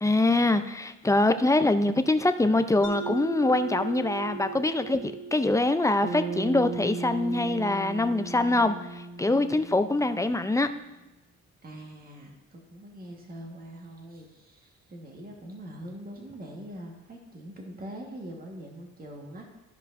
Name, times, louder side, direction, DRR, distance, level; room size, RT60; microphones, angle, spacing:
voice 1, 0.0-10.7, left 2 dB, 10° left, 9 dB, 0.5 m, -24 dB
Mallet percussion, 2.8-7.4, right 4 dB, 60° left, 2.3 m, -39 dB
Bass guitar, 6.0-10.4, right 4 dB, 75° right, 0.9 m, -36 dB
voice 2, 11.6-19.5, right 1 dB, 30° right, 1 dB, 1.5 m, -43 dB
13.5 x 5.1 x 2.6 m, 1.1 s
cardioid pair, 90°, 30 cm